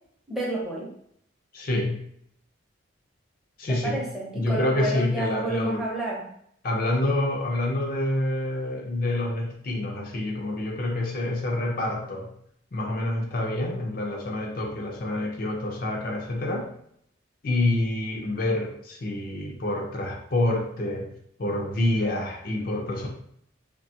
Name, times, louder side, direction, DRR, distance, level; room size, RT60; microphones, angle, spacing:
voice 1, 0.3-0.9 3.7-6.3, right 1 dB, ahead, -5 dB, 0.6 m, -30 dB
voice 2, 1.5-2.0 3.6-4.0 4.3-5.8 6.6-12.3 12.7-16.7 17.4-21.1 21.4-23.1, left 1 dB, 45° left, 0 dB, 0.5 m, -27 dB
3.2 x 2.2 x 2.7 m, 0.69 s
head